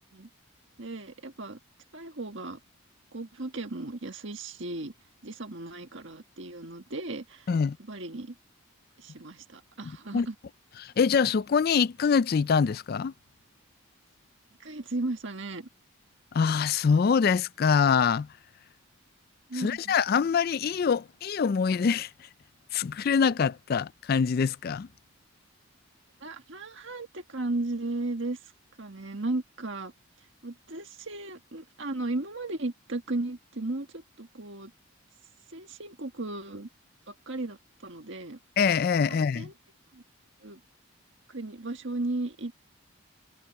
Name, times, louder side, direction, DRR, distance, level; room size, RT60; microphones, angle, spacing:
voice 1, 0.8-1.6 1.9-2.6 3.1-4.9 5.2-7.5 7.8-8.4 9.0-10.4 14.6-15.7 19.5-19.9 26.2-28.4 28.8-29.9 30.4-34.7 35.5-36.7 37.1-37.6 37.8-38.4 39.1-39.5 39.9-40.0 40.4-40.6 41.3-42.6, right 2 dB, 60° right, 1.7 m, -35 dB
voice 2, 10.8-13.1 16.3-18.3 19.5-22.1 22.7-24.9 38.6-39.5, left 6 dB, 45° left, 0.3 m, -24 dB
head